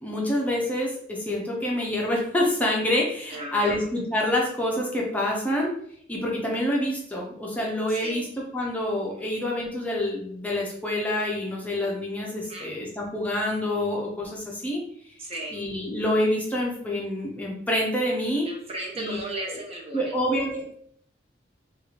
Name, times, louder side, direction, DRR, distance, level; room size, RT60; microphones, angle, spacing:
voice 1, 0.0-5.7 6.1-8.3 8.5-14.8 15.5-18.5 19.0-19.2 19.5-19.6 19.9-20.8, left 1 dB, 10° left, -3 dB, 0.6 m, -27 dB
voice 2, 3.3-3.8 8.0-8.2 12.5-12.7 15.2-15.6 18.4-20.1, right 2 dB, 30° right, 0 dB, 0.6 m, -35 dB
3.6 x 2.4 x 3.2 m, 0.65 s
head